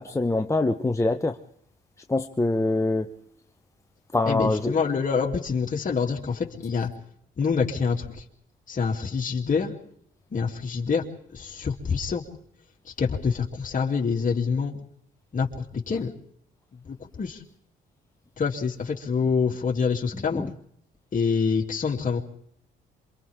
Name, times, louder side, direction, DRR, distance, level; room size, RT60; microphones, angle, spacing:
voice 1, 0.0-1.4 2.1-3.1 4.1-4.7 20.3-20.5, left 2 dB, 15° left, 1.1 m, -24 dB
voice 2, 4.2-6.9 7.4-8.2 8.7-9.8 10.3-11.0 11.3-12.2 12.8-14.8 15.3-15.5 15.9-16.1 16.8-17.4 18.4-20.4 21.1-22.2, left 5 dB, 40° left, 3.3 m, -26 dB
27.5 x 25.5 x 3.8 m
cardioid pair, 90°, 20 cm